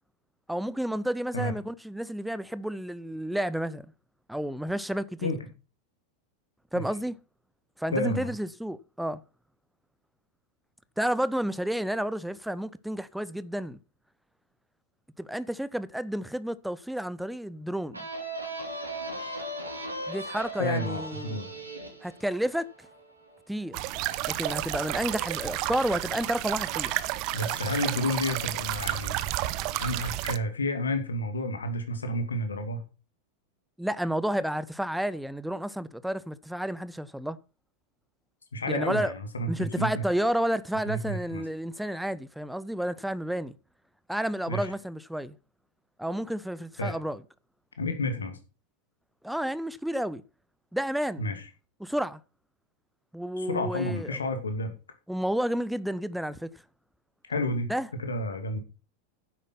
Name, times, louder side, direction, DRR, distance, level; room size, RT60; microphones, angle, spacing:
voice 1, 0.5-3.9 4.3-5.4 6.7-7.2 7.8-9.2 11.0-13.8 15.2-18.0 20.1-21.4 22.0-22.7 23.5-23.8 24.3-26.9 33.8-37.4 38.7-39.1 39.5-43.6 44.1-45.4 46.0-47.2 49.2-50.2 50.7-51.2 51.8-52.2 53.1-54.2 55.1-56.5 57.7-57.9, right 1 dB, ahead, 0.7 m, -31 dB
voice 2, 7.9-8.3 20.6-21.5 27.3-29.2 29.8-32.8 38.5-40.0 40.9-41.4 44.5-44.7 46.8-46.9 47.8-48.4 51.2-51.4 53.4-54.7 57.3-57.7 58.0-58.6, left 1 dB, 75° left, 2.5 m, -30 dB
sound 1, 17.9-23.4, right 1 dB, 85° right, 3.8 m, -38 dB
sound 2, 23.7-30.4, right 15 dB, 45° right, 0.8 m, -31 dB
10.0 x 8.3 x 5.9 m
figure-of-eight pair, 85°, 0 cm